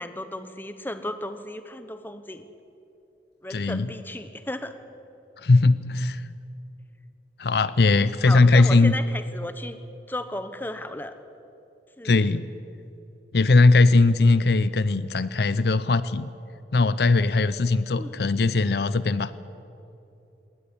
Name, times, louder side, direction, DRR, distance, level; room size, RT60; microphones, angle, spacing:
voice 1, 0.0-2.5 3.4-4.7 8.2-9.8 10.1-11.1 12.0-12.3 17.9-18.2, left 1 dB, 10° left, 10 dB, 1.1 m, -34 dB
voice 2, 3.5-3.9 5.4-6.3 7.4-8.9 12.0-12.5 13.3-16.3 16.7-19.3, left 3 dB, 65° left, 16 dB, 0.6 m, -19 dB
20.0 x 18.5 x 10.0 m, 2.9 s
head